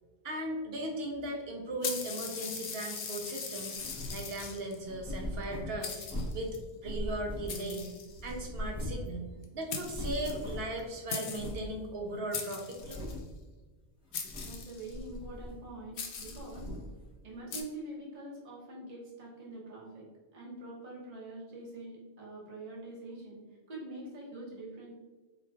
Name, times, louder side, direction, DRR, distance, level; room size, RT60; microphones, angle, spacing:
voice 1, 0.2-6.0 6.3-6.6 6.8-7.9 8.2-9.3 9.5-13.0, right 1 dB, 65° right, 1 dB, 0.9 m, -37 dB
sound 1, 1.8-4.8 5.4-5.5 5.8-6.6 7.5-8.4 9.4-9.5 9.7-10.8 11.1-11.6 12.3-13.2 14.1-15.0 16.0-16.5 17.5-17.6, left 5 dB, 80° left, 0.9 m, -40 dB
sound 2, 3.8-4.3 4.8-6.5 6.8-7.8 8.1-9.1 9.4-9.5 9.7-10.8 11.3-11.7 12.2-12.3 12.7-13.4 14.1-14.6 14.9-15.8 16.1-16.9, equal, 5° right, 0.5 m, -40 dB
voice 2, 14.4-16.7 17.2-24.9, right 2 dB, 40° right, -4 dB, 1.0 m, -45 dB
3.9 x 3.2 x 2.3 m, 1.3 s
omnidirectional pair, 1.1 m